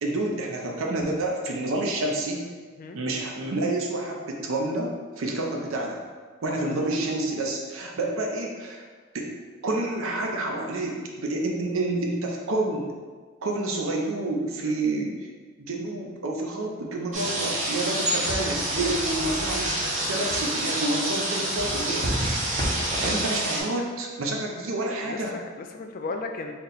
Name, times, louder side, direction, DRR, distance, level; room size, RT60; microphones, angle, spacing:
voice 1, 0.0-2.4 2.9-6.0 6.4-8.8 9.1-9.3 9.6-12.9 13.4-15.2 15.6-22.4 23.0-25.4, right 2 dB, 85° right, 1 dB, 0.6 m, -29 dB
sound 1, 17.1-23.6, right 1 dB, 40° right, 0.8 m, -27 dB
voice 2, 25.0-26.5, left 3 dB, 45° left, 4 dB, 0.3 m, -36 dB
4.1 x 2.1 x 3.9 m, 1.5 s
head